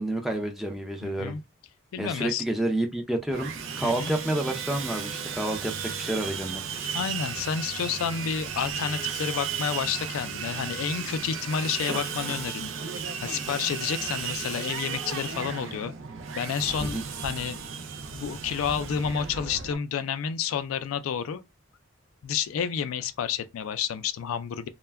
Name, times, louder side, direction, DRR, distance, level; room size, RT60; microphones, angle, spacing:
voice 1, 0.0-1.3 2.0-3.5 3.8-6.6 16.8-17.0, right 1 dB, ahead, 0.4 m, -29 dB
voice 2, 1.0-1.4 1.9-2.4 3.8-4.1 6.9-12.7 13.2-15.9 16.3-17.6 18.1-21.4 22.2-24.7, left 7 dB, 80° left, 0.3 m, -30 dB
Sawing, 3.3-19.8, right 6 dB, 65° right, 0.4 m, -34 dB
2.2 x 2.1 x 3.3 m
head